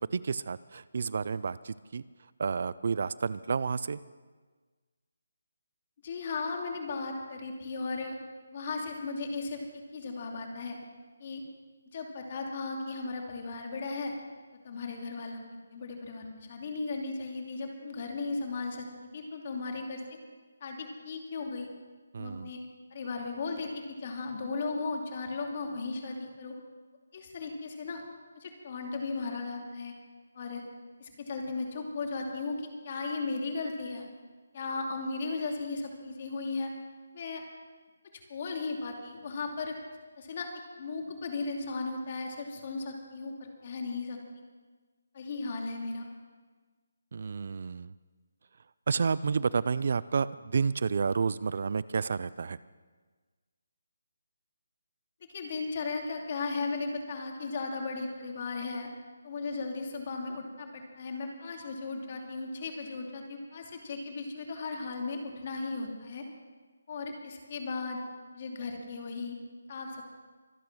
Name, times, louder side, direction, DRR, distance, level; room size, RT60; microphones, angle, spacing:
voice 1, 0.0-2.0 2.4-4.0 22.1-22.5 47.1-47.9 48.9-52.6, right 5 dB, 50° right, 18 dB, 0.4 m, -30 dB
voice 2, 6.0-8.2 8.5-10.8 11.2-11.4 11.9-14.1 14.6-15.4 15.7-18.9 19.1-20.0 20.6-21.7 22.2-22.6 22.9-26.5 27.1-28.0 28.3-29.9 30.3-30.6 31.0-34.1 34.5-36.7 37.1-37.4 38.3-39.8 40.2-40.5 40.8-44.2 45.1-46.1 55.3-58.9 59.2-66.2 66.9-68.0 68.3-69.4 69.7-70.0, left 3 dB, 35° left, 2 dB, 2.6 m, -36 dB
24.5 x 8.7 x 6.1 m, 1.4 s
hypercardioid pair, 170°, 0 cm